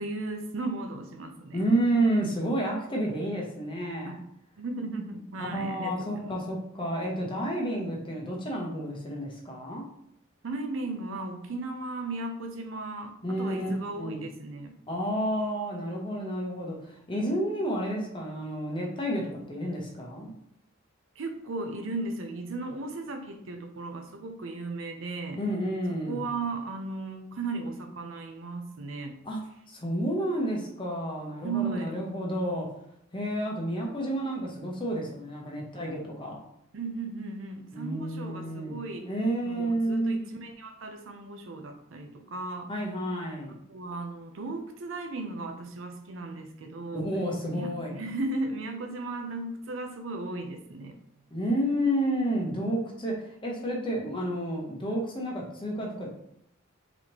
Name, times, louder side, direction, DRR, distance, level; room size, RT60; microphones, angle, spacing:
voice 1, 0.0-1.6 4.1-4.2 4.6-6.4 10.4-14.7 21.2-25.4 26.1-29.2 31.4-31.9 35.7-35.8 36.7-39.1 39.4-42.7 43.5-47.1 47.5-50.9, right 3 dB, 65° right, 6 dB, 0.5 m, -36 dB
voice 2, 1.5-4.2 5.4-9.8 13.2-14.2 14.9-19.2 19.5-20.3 25.3-26.2 29.2-29.4 29.7-32.7 33.1-36.4 37.7-40.2 42.7-43.5 46.9-48.0 51.3-56.1, right 1 dB, 25° left, -2 dB, 0.8 m, -30 dB
4.0 x 3.1 x 2.9 m, 0.74 s
head